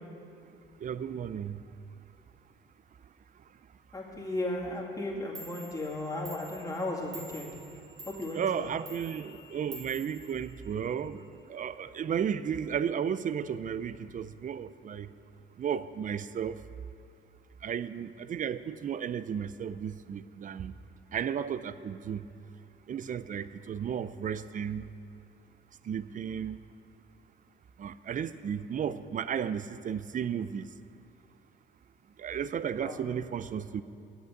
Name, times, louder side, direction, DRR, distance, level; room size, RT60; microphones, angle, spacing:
voice 1, 0.8-1.7 3.4-3.5 8.3-15.1 15.6-16.6 17.6-20.8 21.1-22.3 22.9-24.9 25.8-26.6 27.8-30.7 32.2-33.8, right 8 dB, 40° right, 15 dB, 0.4 m, -34 dB
voice 2, 3.9-7.6 8.1-8.7 32.8-33.0, left 2 dB, 15° left, -3 dB, 2.3 m, -35 dB
Clock, 5.0-5.1 5.4-11.0, right 2 dB, 75° right, 2.0 m, -49 dB
8.5 x 8.1 x 7.9 m, 2.5 s
cardioid pair, 90°, 20 cm